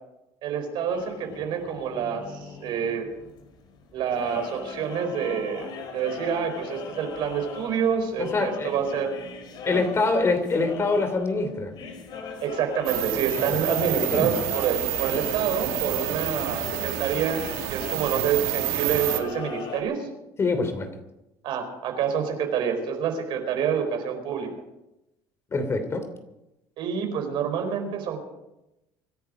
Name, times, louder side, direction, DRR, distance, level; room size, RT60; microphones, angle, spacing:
voice 1, 0.4-2.2 2.6-3.1 3.9-9.1 9.7-9.8 12.4-17.5 17.7-20.1 21.4-24.5 26.8-28.2, right 7 dB, 60° right, 5 dB, 4.3 m, -27 dB
sound 1, 0.9-19.8, left 5 dB, 50° left, 3.7 m, -39 dB
voice 2, 8.3-8.7 9.7-11.7 13.5-13.6 14.1-14.3 20.4-20.9 25.5-26.0, left 3 dB, 30° left, 8 dB, 2.9 m, -24 dB
sound 2, 12.9-19.2, right 14 dB, 80° right, 1.9 m, -29 dB
25.0 x 10.5 x 5.1 m, 0.92 s
supercardioid pair, 110°, 9 cm